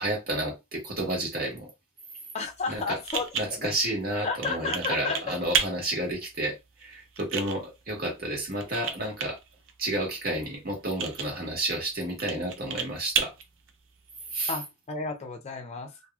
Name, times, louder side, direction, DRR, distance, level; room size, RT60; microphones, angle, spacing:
voice 1, 0.0-1.7 2.7-3.0 3.3-6.5 6.8-9.4 9.8-13.3 14.3-14.5, right 1 dB, 45° right, 1.5 m, -31 dB
voice 2, 2.3-3.3 3.6-3.7 4.2-5.4 14.5-15.9, left 4 dB, 30° left, 0.5 m, -32 dB
sound 1, 2.4-14.5, right 6 dB, 65° right, 0.5 m, -35 dB
3.0 x 2.6 x 2.3 m
head